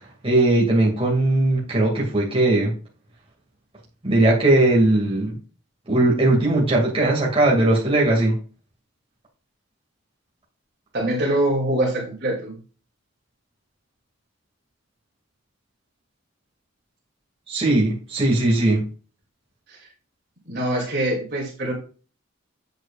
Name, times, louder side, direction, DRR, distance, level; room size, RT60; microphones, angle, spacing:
voice 1, 0.2-2.7 4.0-5.4 5.9-8.3 17.5-18.8, right 2 dB, 25° right, -3 dB, 2.2 m, -19 dB
voice 2, 10.9-12.6 19.7-19.9 20.5-21.7, right 1 dB, 55° right, -1 dB, 2.5 m, -24 dB
7.9 x 7.8 x 2.4 m, 0.38 s
head